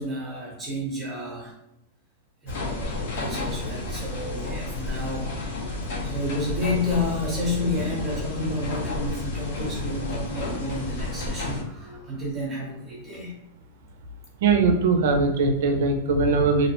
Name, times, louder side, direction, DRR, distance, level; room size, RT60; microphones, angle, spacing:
voice 1, 0.0-1.5 2.4-5.3 6.0-13.3, left 1 dB, 15° right, -4 dB, 0.8 m, -30 dB
sound 1, 2.5-11.6, left 2 dB, 70° left, 0.9 m, -31 dB
voice 2, 14.4-16.7, right 4 dB, 65° right, 4 dB, 0.5 m, -21 dB
2.6 x 2.1 x 2.9 m, 0.82 s
supercardioid pair, 155°, 0 cm